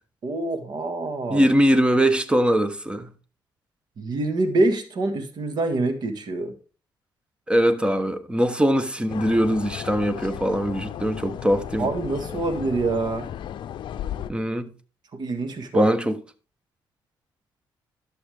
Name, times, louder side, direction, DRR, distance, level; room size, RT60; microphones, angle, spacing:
voice 1, 0.2-1.5 4.0-6.5 11.8-13.3 15.1-15.9, right 2 dB, 55° right, 1.7 m, -26 dB
voice 2, 1.3-3.1 7.5-11.9 14.3-14.7 15.7-16.1, equal, 10° right, 1.0 m, -21 dB
sound 1, 9.1-14.3, left 10 dB, 70° left, 0.5 m, -35 dB
11.5 x 6.8 x 3.5 m
cardioid pair, 90°, 8 cm